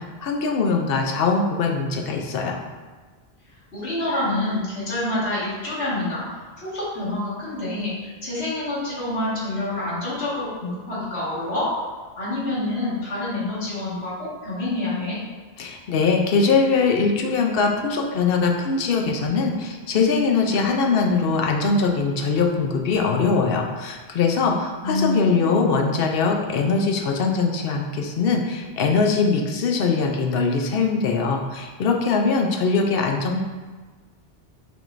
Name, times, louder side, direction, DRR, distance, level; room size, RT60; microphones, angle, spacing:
voice 1, 0.0-2.6 15.6-33.4, left 4 dB, 65° left, 2 dB, 0.8 m, -22 dB
voice 2, 3.7-6.2 6.6-11.7 12.2-15.2 24.8-25.6, left 2 dB, 85° left, -11 dB, 2.0 m, -27 dB
5.8 x 3.6 x 2.5 m, 1.4 s
omnidirectional pair, 1.1 m